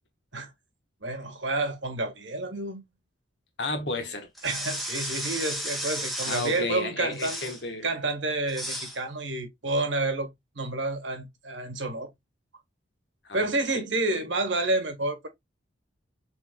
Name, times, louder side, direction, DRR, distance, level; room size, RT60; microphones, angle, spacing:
voice 1, 1.0-2.8 4.4-7.4 7.8-10.3 10.5-12.1 13.3-15.3, right 2 dB, 85° right, 1.4 m, -29 dB
voice 2, 3.6-4.3 6.2-7.9 13.2-13.5 13.7-13.8, left 2 dB, 70° left, 1.2 m, -32 dB
sound 1, 4.3-6.6 7.1-7.6 8.5-9.0, equal, ahead, 1.2 m, -33 dB
6.2 x 3.3 x 2.3 m
head